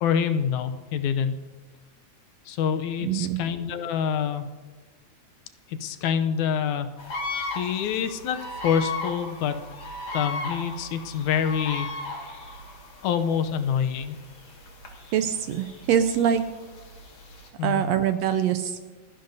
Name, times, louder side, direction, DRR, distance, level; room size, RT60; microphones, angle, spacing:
voice 1, 0.0-1.4 2.5-4.5 5.7-6.9 7.6-8.4 8.6-9.6 10.1-12.3 13.0-14.2 17.6-17.8, left 8 dB, 80° left, 9 dB, 2.1 m, -26 dB
voice 2, 3.0-3.4 15.1-16.4 17.6-18.8, right 9 dB, 80° right, 8 dB, 1.6 m, -24 dB
sound 1, 7.0-17.5, left 2 dB, 50° left, 2.7 m, -37 dB
30.0 x 10.5 x 2.7 m, 1.4 s
omnidirectional pair, 3.4 m